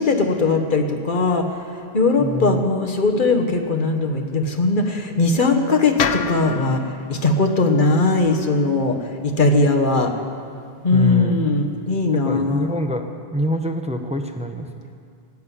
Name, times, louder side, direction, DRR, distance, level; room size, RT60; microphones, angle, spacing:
voice 1, 0.0-1.5 1.9-9.0 9.2-10.1 10.8-12.7, left 3 dB, 50° left, 4 dB, 1.4 m, -19 dB
voice 2, 2.2-2.6 10.9-11.4 12.2-14.7, equal, 5° right, 5 dB, 0.7 m, -25 dB
sound 1, 6.0-10.2, left 7 dB, 85° left, 0.9 m, -31 dB
16.5 x 7.6 x 9.9 m, 2.3 s
omnidirectional pair, 1.1 m